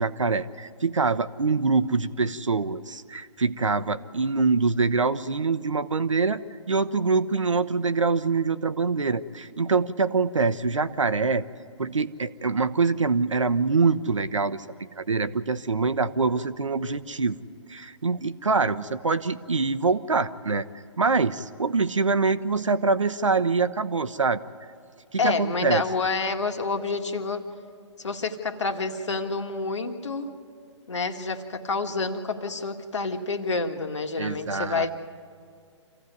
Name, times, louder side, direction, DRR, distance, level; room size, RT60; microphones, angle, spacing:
voice 1, 0.0-6.4 6.7-11.4 11.8-14.6 15.0-17.4 17.7-20.6 21.0-24.4 25.1-25.8 34.2-34.9, right 4 dB, 80° right, 11 dB, 1.0 m, -24 dB
voice 2, 25.2-27.4 28.0-30.3 30.9-34.9, left 4 dB, 70° left, 6 dB, 2.0 m, -28 dB
26.5 x 15.5 x 9.5 m, 2.2 s
figure-of-eight pair, 130°, 16 cm